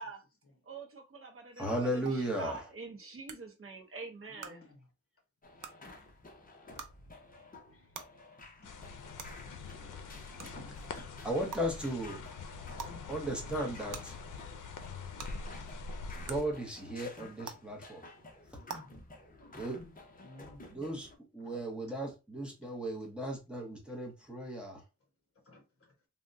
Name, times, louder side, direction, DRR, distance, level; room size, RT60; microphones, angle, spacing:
voice 1, 0.7-4.6, right 4 dB, 45° right, 0.7 m, -45 dB
voice 2, 1.6-2.6 11.2-12.2 13.1-14.2 16.2-18.0 19.5-19.8 20.7-21.1 21.3-24.8, right 1 dB, 5° right, 0.8 m, -36 dB
sound 1, 2.1-2.2 3.3-3.4 4.4-4.5 5.6-5.7 6.8-6.9 7.9-8.0 9.2-9.3 10.4-10.5 11.5-11.6 12.8-12.9 13.9-14.0 15.2-15.3 16.3-16.4 17.4-17.5 18.7-18.8, right 6 dB, 85° right, 0.5 m, -42 dB
voice 3, 4.3-4.8 7.7-7.9 8.6-8.7 10.0-11.0 20.2-20.6 21.4-21.6 25.5-25.6, left 1 dB, 45° left, 1.0 m, -54 dB
sound 2, 5.4-21.2, left 2 dB, 30° left, 0.6 m, -52 dB
sound 3, 8.6-16.4, left 4 dB, 80° left, 0.5 m, -44 dB
3.4 x 2.1 x 2.5 m
wide cardioid pair, 160°, 30 cm